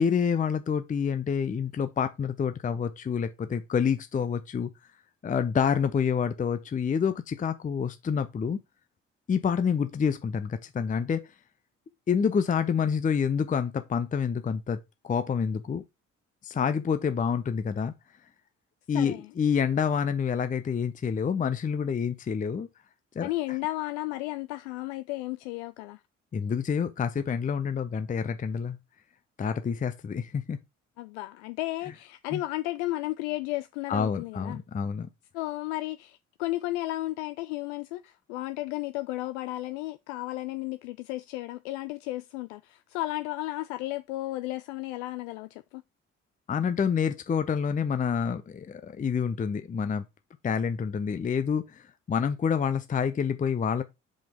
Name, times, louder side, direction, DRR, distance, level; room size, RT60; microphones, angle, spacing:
voice 1, 0.0-4.7 5.2-8.6 9.3-11.3 12.1-15.8 16.4-17.9 18.9-22.7 23.1-23.6 26.3-28.8 29.4-30.6 32.3-32.4 33.9-35.1 46.5-50.1 50.4-53.8, left 6 dB, 20° left, 0.6 m, -28 dB
voice 2, 18.9-19.3 23.2-26.0 31.0-34.6 35.3-45.8, left 18 dB, 65° left, 0.5 m, -33 dB
5.3 x 5.2 x 3.5 m
figure-of-eight pair, 45°, 37 cm